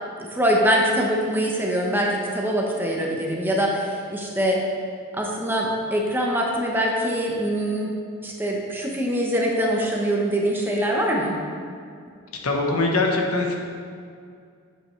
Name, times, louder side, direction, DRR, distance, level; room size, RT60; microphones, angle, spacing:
voice 1, 0.2-4.6 5.1-7.9 8.2-11.4, equal, 10° right, -1 dB, 0.9 m, -23 dB
voice 2, 12.4-13.6, left 2 dB, 85° left, 1 dB, 1.1 m, -22 dB
8.4 x 7.7 x 3.2 m, 2.3 s
head